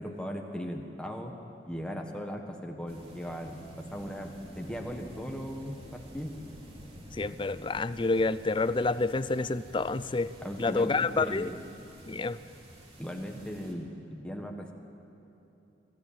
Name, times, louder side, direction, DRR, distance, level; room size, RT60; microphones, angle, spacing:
voice 1, 0.0-1.3 1.7-6.3 10.4-11.6 13.0-14.7, equal, 5° left, 2 dB, 1.5 m, -38 dB
sound 1, 2.9-13.7, equal, 35° right, 2.7 m, -49 dB
voice 2, 7.2-10.3 10.6-11.5 12.1-12.4, left 3 dB, 30° left, 15 dB, 0.5 m, -28 dB
22.5 x 14.0 x 9.0 m, 2.9 s
head